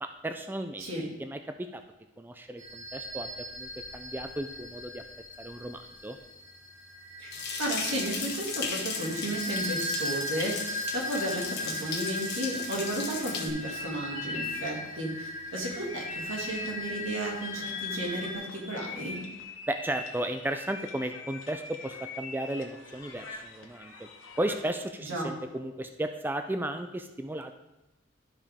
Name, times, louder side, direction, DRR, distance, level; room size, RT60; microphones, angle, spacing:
voice 1, 0.0-0.9 1.2-1.8 2.2-5.0 5.4-6.2 19.7-24.1 24.4-27.5, right 1 dB, 10° right, 7 dB, 0.3 m, -35 dB
sound 1, 2.6-18.3, left 1 dB, 35° right, 2.8 m, -39 dB
sound 2, 7.3-13.5, left 5 dB, 55° left, 1.5 m, -36 dB
voice 2, 7.6-10.6 10.9-19.2 25.0-25.3, right 1 dB, 90° right, -2 dB, 2.3 m, -33 dB
sound 3, 13.6-24.8, left 4 dB, 85° left, 1.1 m, -42 dB
12.5 x 5.1 x 3.5 m, 0.95 s
head